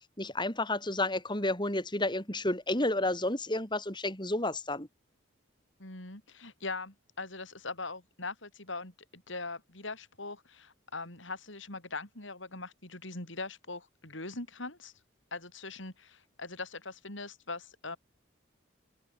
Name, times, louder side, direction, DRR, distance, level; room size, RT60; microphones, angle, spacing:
voice 1, 0.2-4.9, left 2 dB, 25° left, 6.3 m, -31 dB
voice 2, 5.8-14.9 15.3-18.0, left 3 dB, 70° left, 6.3 m, -41 dB
open air
head